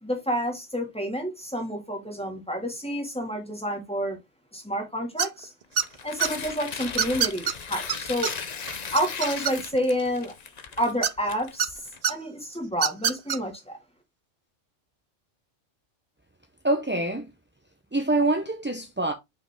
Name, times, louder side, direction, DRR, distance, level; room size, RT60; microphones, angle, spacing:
voice 1, 0.0-4.2 4.5-5.5 6.0-8.3 8.9-10.3 10.8-11.8 12.1-13.8, equal, 5° left, 1.9 m, -29 dB
sound 1, 5.2-5.4 5.8-6.3 7.0-7.5 7.9-8.0 8.2-8.3 8.7-9.8 11.0-11.7 12.0-12.1 12.7-13.4, right 9 dB, 85° right, 0.3 m, -25 dB
Tearing, 5.7-12.0, left 6 dB, 40° left, 0.7 m, -37 dB
voice 2, 16.6-17.3 17.9-19.1, right 2 dB, 15° right, 0.4 m, -25 dB
5.8 x 5.1 x 3.5 m
omnidirectional pair, 1.3 m